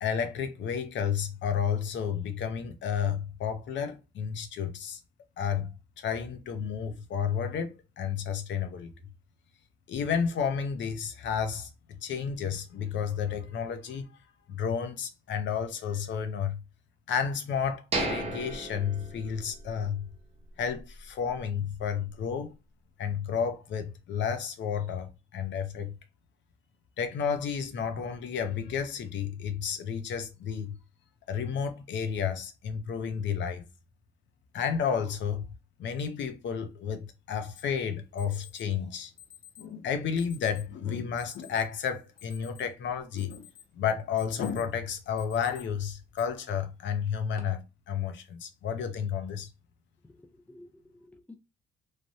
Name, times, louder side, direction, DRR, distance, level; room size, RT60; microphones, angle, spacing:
voice 1, 0.0-5.0 5.4-8.9 9.9-11.7 12.0-14.1 14.5-16.6 17.1-20.1 20.6-22.6 23.0-26.0 27.0-30.8 31.3-33.6 34.5-35.4 35.8-39.1 39.6-43.5 43.7-49.5, left 7 dB, 70° left, 0.6 m, -31 dB
sound 1, 17.9-19.9 20.2-20.3 20.8-21.0, right 2 dB, 30° right, 0.9 m, -34 dB
Alarm, 37.6-37.7 38.2-38.6 39.2-39.7 40.2-40.7 41.2-41.6 42.0-42.8 43.2-43.7 44.0-44.7 45.2-45.6 46.2-46.3 47.0-47.4, left 10 dB, 50° left, 0.9 m, -51 dB
voice 2, 50.1-51.4, left 2 dB, 10° left, 0.4 m, -52 dB
3.2 x 2.1 x 2.6 m
cardioid pair, 90°, 20 cm